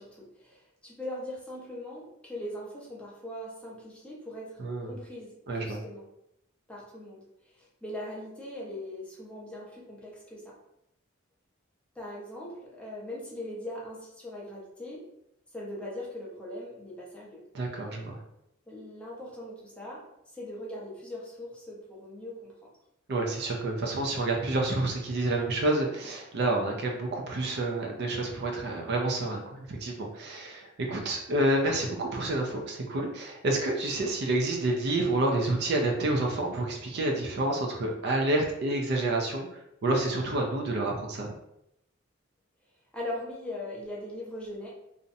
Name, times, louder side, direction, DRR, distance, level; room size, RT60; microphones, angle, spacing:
voice 1, 0.0-6.1 6.7-10.6 11.9-15.1 15.5-17.4 18.7-20.0 20.3-22.7 42.9-44.7, left 1 dB, 5° left, -5 dB, 0.6 m, -40 dB
voice 2, 4.6-4.9 5.5-5.8 17.5-18.2 23.1-39.5 39.8-41.3, right 2 dB, 55° right, 1 dB, 0.4 m, -29 dB
2.5 x 2.0 x 2.6 m, 0.81 s
head